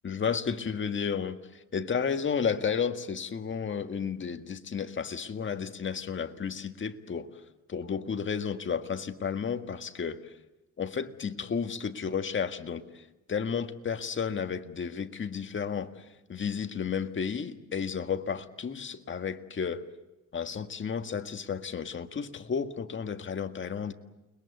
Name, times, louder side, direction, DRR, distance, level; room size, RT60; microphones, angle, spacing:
voice 1, 0.0-7.3 7.7-10.3 10.8-16.0 16.3-19.9 20.3-23.9, left 6 dB, 40° left, 1.8 m, -32 dB
29.5 x 21.5 x 8.1 m
cardioid pair, 90°, 30 cm